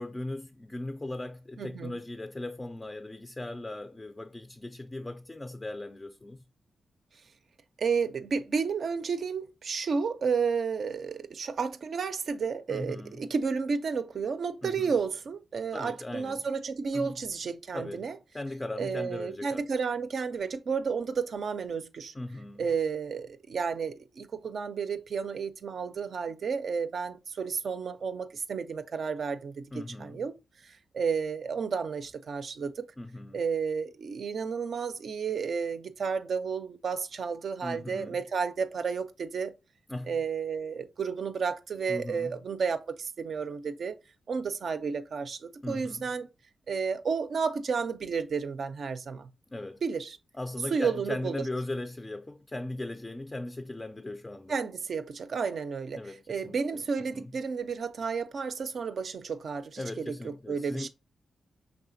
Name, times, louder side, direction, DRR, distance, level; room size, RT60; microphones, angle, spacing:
voice 1, 0.0-6.4 12.7-13.2 14.6-14.9 15.7-16.4 16.9-17.1 17.7-18.1 18.3-19.6 22.1-22.7 29.7-30.2 33.0-33.4 37.6-38.2 39.9-40.2 41.9-42.4 45.6-46.1 49.5-49.8 50.4-54.6 55.9-56.6 57.1-57.3 59.8-60.9, left 2 dB, 20° left, 0.3 m, -38 dB
voice 2, 1.6-1.9 7.8-18.2 18.8-22.1 22.6-30.3 30.6-32.9 33.3-39.5 40.1-43.9 44.3-46.3 46.7-49.3 49.8-50.2 50.7-51.4 54.5-60.1 60.5-60.9, right 5 dB, 65° right, 0.4 m, -32 dB
4.8 x 3.4 x 2.5 m
cardioid pair, 65°, 0 cm